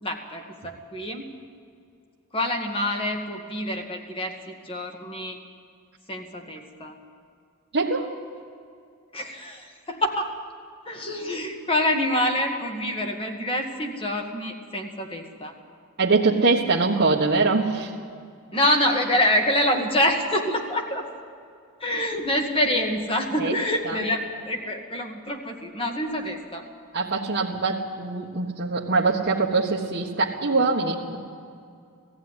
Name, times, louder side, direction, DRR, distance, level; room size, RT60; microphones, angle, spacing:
voice 1, 0.0-1.3 2.3-5.4 6.1-7.0 9.1-10.3 10.9-15.5 18.5-21.0 21.8-24.2 24.5-26.6, left 1 dB, 25° left, 3 dB, 2.0 m, -26 dB
voice 2, 7.7-8.1 16.0-17.9 23.4-23.5 23.8-24.0 26.9-31.2, right 3 dB, 50° right, -5 dB, 1.5 m, -23 dB
18.0 x 15.0 x 9.8 m, 2.4 s
head